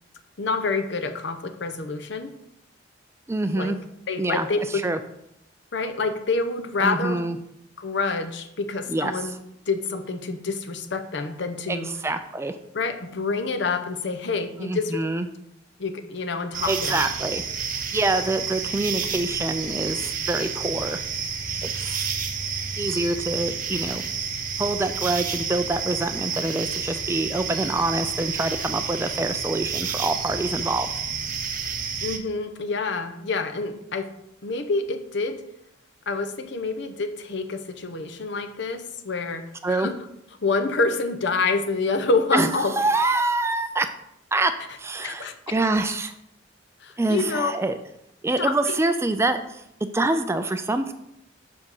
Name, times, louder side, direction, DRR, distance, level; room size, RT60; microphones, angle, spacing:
voice 1, 0.4-2.3 3.5-3.7 4.1-4.9 5.7-7.2 7.8-9.3 9.7-11.9 12.7-15.0 15.8-17.0 32.0-34.1 34.4-35.4 36.1-40.0 40.4-42.7 45.0-45.3 46.8-47.5 48.4-48.8, left 3 dB, 65° left, 8 dB, 0.8 m, -27 dB
voice 2, 3.3-3.8 4.2-4.5 4.8-5.0 6.8-7.4 8.9-9.2 11.7-12.6 14.6-15.3 16.7-17.4 17.8-21.0 21.6-22.1 22.8-24.0 24.6-30.9 39.6-39.9 42.3-42.5 42.8-43.9 44.3-44.5 44.8-46.1 47.0-47.8 48.2-49.6 49.9-50.9, right 2 dB, 15° right, 9 dB, 0.4 m, -25 dB
sound 1, 16.5-32.2, right 6 dB, 45° right, 0.8 m, -30 dB
6.3 x 5.1 x 5.5 m, 0.78 s
head